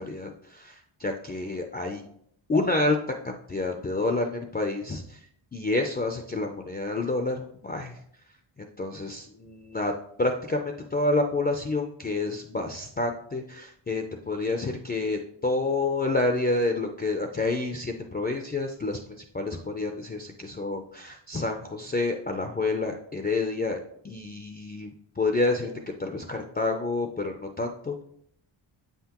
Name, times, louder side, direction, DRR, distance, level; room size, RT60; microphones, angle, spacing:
voice 1, 0.0-2.0 2.5-3.0 3.2-8.0 8.6-9.9 10.2-25.7 26.0-28.0, left 2 dB, 20° left, 4 dB, 0.3 m, -29 dB
7.9 x 5.7 x 2.9 m, 0.68 s
wide cardioid pair, 165°, 49 cm